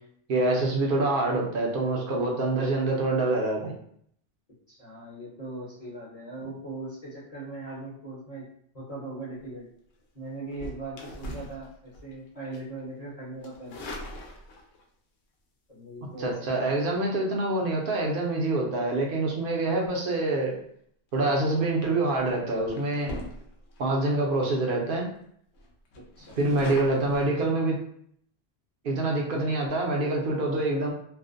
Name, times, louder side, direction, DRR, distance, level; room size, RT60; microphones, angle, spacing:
voice 1, 0.3-3.8 16.2-20.5 21.1-23.1 23.8-25.1 26.4-27.8 28.8-30.9, right 2 dB, 60° right, -1 dB, 0.7 m, -26 dB
voice 2, 4.7-8.4 8.7-9.7 10.1-13.8 15.7-16.8 26.0-26.4, right 2 dB, 40° left, -8 dB, 0.8 m, -40 dB
sound 1, 10.5-12.2 12.5-12.8 13.4-14.8 16.1-16.4 21.4-21.7 22.2-22.3 22.7-23.8 24.3-24.4 24.7-24.8 25.1-25.2 25.5-27.3, left 1 dB, 70° left, 0.8 m, -41 dB
2.5 x 2.1 x 2.5 m, 0.66 s
omnidirectional pair, 1.2 m